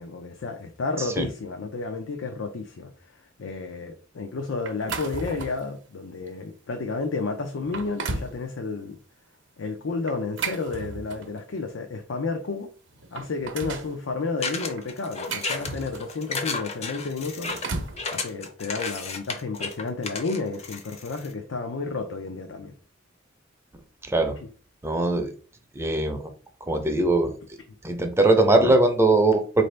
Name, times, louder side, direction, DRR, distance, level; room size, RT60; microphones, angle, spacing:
voice 1, 0.0-9.0 9.6-12.7 13.1-17.5 18.1-22.7, left 3 dB, 75° left, 0.5 m, -31 dB
sound 1, 4.7-5.7 6.3-6.4 7.1-7.2 7.6-8.4 10.1-11.4 12.5-12.6 12.9-13.9 14.8-16.2 17.2-18.0, right 3 dB, 70° right, 0.7 m, -34 dB
sound 2, 14.4-21.3, left 4 dB, 35° left, 0.6 m, -33 dB
voice 2, 24.8-25.3 25.8-26.2 26.7-27.3 27.8-29.6, right 2 dB, 15° right, 0.5 m, -20 dB
4.3 x 2.7 x 3.2 m
head